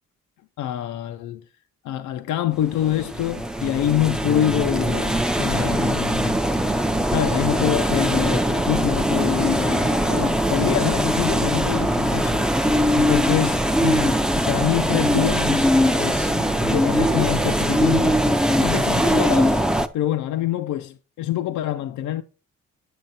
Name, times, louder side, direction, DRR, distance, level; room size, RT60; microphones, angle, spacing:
voice 1, 0.6-1.4 1.8-6.4 7.1-19.6 19.9-22.2, left 12 dB, 75° left, 0.5 m, -26 dB
sound 1, 2.6-19.9, equal, ahead, 0.5 m, -21 dB
9.1 x 6.5 x 2.7 m
cardioid pair, 90°, 30 cm